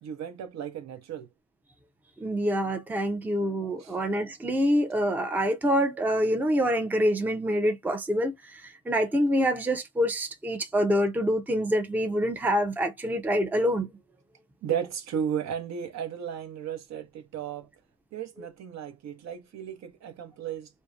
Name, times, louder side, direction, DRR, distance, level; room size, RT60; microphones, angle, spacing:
voice 1, 0.0-1.3 3.8-3.9 14.6-17.7 18.1-20.7, right 8 dB, 65° right, 0.7 m, -34 dB
voice 2, 2.2-13.9, equal, 5° right, 0.4 m, -26 dB
2.6 x 2.0 x 2.3 m
cardioid pair, 90°, 30 cm